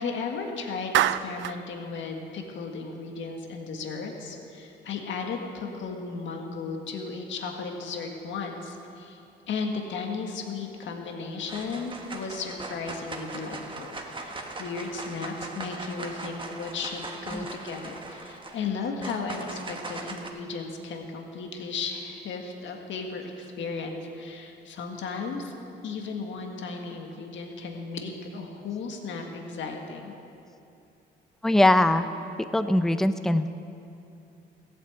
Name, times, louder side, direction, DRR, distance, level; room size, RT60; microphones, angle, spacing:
voice 1, 0.0-9.2 9.5-25.5 25.8-30.1, left 4 dB, 70° left, 2 dB, 1.7 m, -35 dB
Clapping, 0.9-1.6, right 12 dB, 70° right, 0.4 m, -25 dB
sound 1, 10.8-11.1 11.5-20.3, right 2 dB, 25° right, 1.4 m, -40 dB
voice 2, 31.4-32.1 32.5-33.5, left 1 dB, ahead, 10 dB, 0.5 m, -21 dB
15.5 x 8.7 x 8.0 m, 2.7 s
cardioid pair, 90°, 20 cm